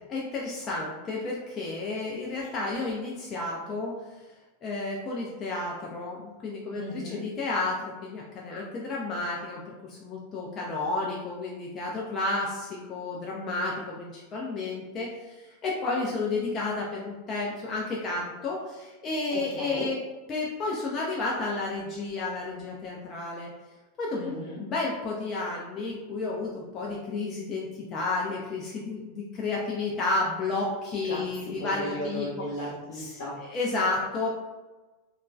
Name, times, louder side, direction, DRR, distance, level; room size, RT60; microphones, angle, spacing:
voice 1, 0.1-3.9 4.6-6.1 6.4-6.8 7.2-7.7 8.1-9.6 10.0-12.5 12.9-13.7 14.3-15.1 15.6-16.7 17.0-18.6 19.0-20.0 20.3-23.5 24.0-26.5 26.7-27.6 27.9-30.7 30.9-32.3 33.5-34.3, left 3 dB, 30° left, -3 dB, 0.4 m, -31 dB
voice 2, 6.7-7.2 19.3-19.9 24.1-24.6 31.0-33.4, left 1 dB, 65° left, -8 dB, 0.7 m, -36 dB
2.8 x 2.3 x 2.2 m, 1.2 s
figure-of-eight pair, 90°, 0 cm